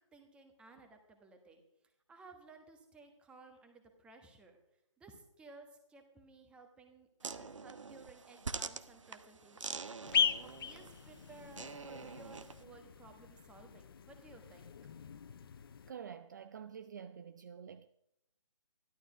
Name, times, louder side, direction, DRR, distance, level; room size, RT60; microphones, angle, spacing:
voice 1, 0.1-1.6 2.1-4.6 5.0-14.7, right 3 dB, 5° right, 1.3 m, -57 dB
sound 1, 7.2-12.6, right 4 dB, 70° right, 0.9 m, -45 dB
sound 2, 10.0-15.9, left 7 dB, 45° left, 0.7 m, -38 dB
voice 2, 15.9-17.9, right 7 dB, 35° right, 0.4 m, -48 dB
13.5 x 12.0 x 5.0 m
figure-of-eight pair, 145°, 16 cm